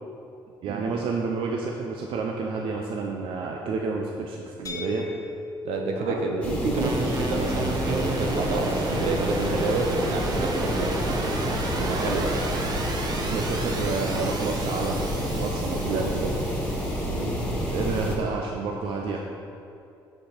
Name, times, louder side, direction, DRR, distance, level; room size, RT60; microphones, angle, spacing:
voice 1, 0.6-5.1 6.0-6.2 11.8-12.1 13.3-15.0 15.4-16.1 17.7-19.2, right 4 dB, 65° right, 1 dB, 0.6 m, -30 dB
sound 1, 4.7-10.4, left 2 dB, 35° left, 1.1 m, -40 dB
voice 2, 5.6-11.0 11.8-12.3 15.9-16.3 17.1-17.3, right 3 dB, 85° right, 2 dB, 1.0 m, -29 dB
sound 2, 6.4-18.2, equal, 10° left, 1.7 m, -29 dB
sound 3, 6.8-17.0, right 3 dB, 45° right, 1.0 m, -33 dB
6.6 x 5.8 x 5.0 m, 2.6 s
cardioid pair, 90°, 10 cm